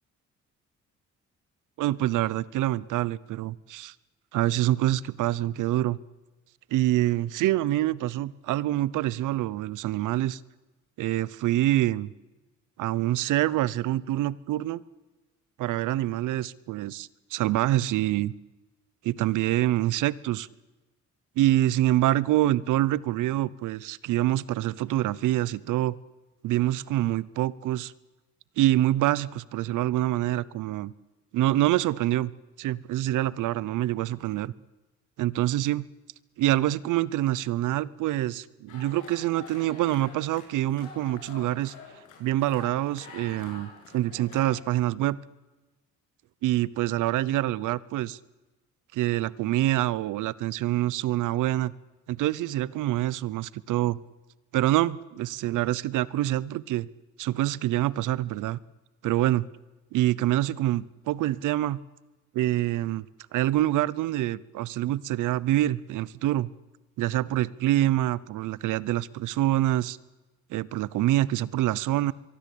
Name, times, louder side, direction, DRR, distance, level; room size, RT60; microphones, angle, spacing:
voice 1, 1.8-3.9 4.3-6.0 6.7-10.4 11.0-12.1 12.8-14.8 15.6-18.3 19.0-20.5 21.4-26.0 26.4-27.9 28.6-30.9 31.3-32.3 32.6-34.5 35.2-35.9 36.4-41.7 42.2-45.2 46.4-48.2 48.9-51.7 52.1-54.0 54.5-56.9 57.2-58.6 59.0-59.4 59.9-61.8 62.3-63.1 63.3-66.5 67.0-70.0 70.5-72.1, right 15 dB, 85° right, 20 dB, 0.8 m, -26 dB
sound 1, 38.7-44.5, left 5 dB, 90° left, 7.5 m, -47 dB
24.0 x 23.0 x 8.6 m, 1.1 s
cardioid pair, 90°, 30 cm